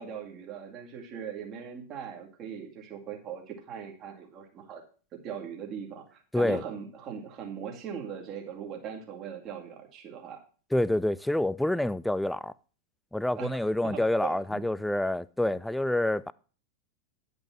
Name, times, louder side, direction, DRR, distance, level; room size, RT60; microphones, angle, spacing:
voice 1, 0.0-4.8 5.1-10.4 13.3-13.5 13.9-14.7, right 7 dB, 35° right, 2.2 m, -40 dB
voice 2, 10.7-12.5 13.1-16.3, left 1 dB, 5° left, 0.3 m, -27 dB
10.5 x 5.2 x 6.0 m
figure-of-eight pair, 90°, 0 cm